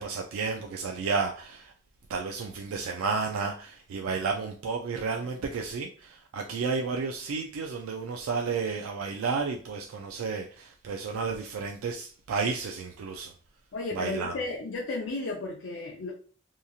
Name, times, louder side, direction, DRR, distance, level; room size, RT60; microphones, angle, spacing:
voice 1, 0.0-1.7 2.1-13.3 13.9-14.3, right 4 dB, 85° right, 0.3 m, -32 dB
voice 2, 13.7-16.1, left 2 dB, 60° left, 0.5 m, -33 dB
2.8 x 2.5 x 2.3 m
head